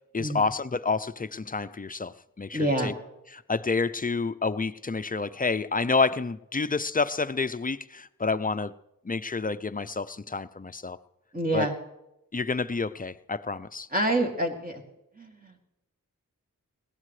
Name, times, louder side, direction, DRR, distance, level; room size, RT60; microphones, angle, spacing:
voice 1, 0.1-2.9 3.3-8.7 9.0-11.0 11.5-11.7 12.3-13.9, left 4 dB, 25° left, 13 dB, 0.5 m, -29 dB
voice 2, 2.5-2.9 11.3-11.7 13.9-14.8 15.2-15.6, right 1 dB, 25° right, 1 dB, 2.6 m, -27 dB
21.0 x 16.5 x 3.2 m, 0.89 s
wide cardioid pair, 65°, 34 cm